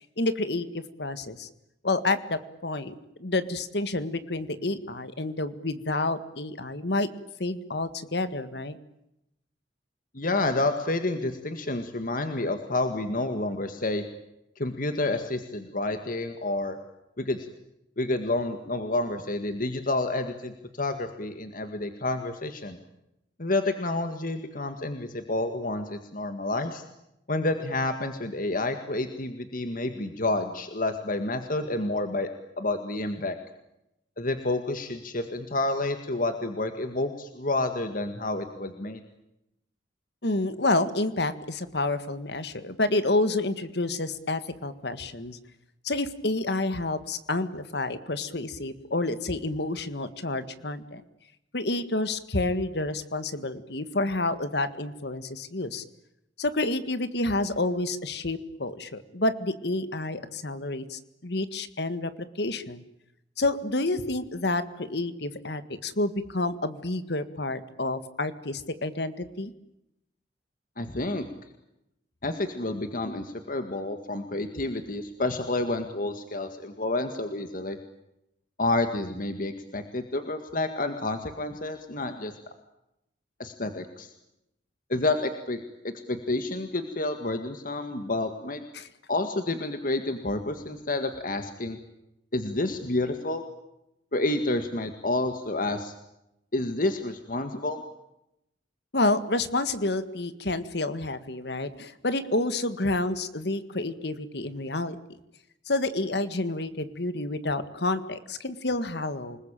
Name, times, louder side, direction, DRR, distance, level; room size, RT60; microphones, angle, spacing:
voice 1, 0.2-1.5 1.8-7.1 7.4-8.8 40.2-45.4 45.8-51.0 51.5-55.8 56.4-62.8 63.4-69.5 88.7-88.9 98.9-105.0 105.7-109.4, left 2 dB, 65° left, 12 dB, 1.8 m, -29 dB
voice 2, 10.1-14.1 14.6-16.8 17.2-17.4 18.0-22.8 23.4-26.8 27.3-32.3 32.6-33.4 34.2-39.0 70.8-71.3 72.2-77.8 78.6-82.3 83.4-84.1 84.9-88.6 89.1-91.8 92.3-93.4 94.1-95.9 96.5-97.8, left 2 dB, 50° left, 7 dB, 2.0 m, -29 dB
28.5 x 20.5 x 9.0 m, 0.86 s
head